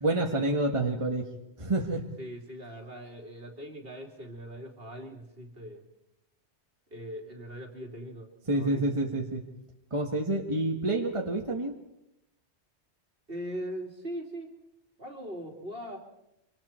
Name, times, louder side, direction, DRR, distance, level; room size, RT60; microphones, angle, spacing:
voice 1, 0.0-1.3 1.6-2.0 8.5-9.4 9.9-11.7, right 2 dB, 30° right, 1 dB, 1.7 m, -28 dB
voice 2, 2.2-5.8 6.9-8.8 13.3-14.5 15.0-16.0, equal, 55° right, 2 dB, 3.2 m, -40 dB
25.5 x 25.0 x 4.4 m, 0.85 s
omnidirectional pair, 1.1 m